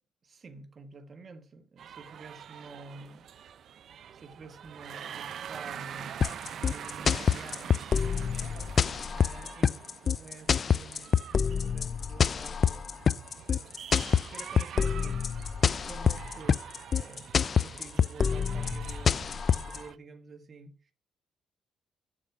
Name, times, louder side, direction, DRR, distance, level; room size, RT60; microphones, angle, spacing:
voice 1, 0.2-3.3 4.1-13.1 13.3-13.8 14.3-15.2 15.6-16.6 16.9-20.9, right 4 dB, 40° right, 1.2 m, -49 dB
sound 1, 1.8-20.0, right 9 dB, 65° right, 0.6 m, -45 dB
sound 2, 6.2-19.8, left 7 dB, 45° left, 0.3 m, -26 dB
7.5 x 6.8 x 4.8 m
cardioid pair, 90°, 0 cm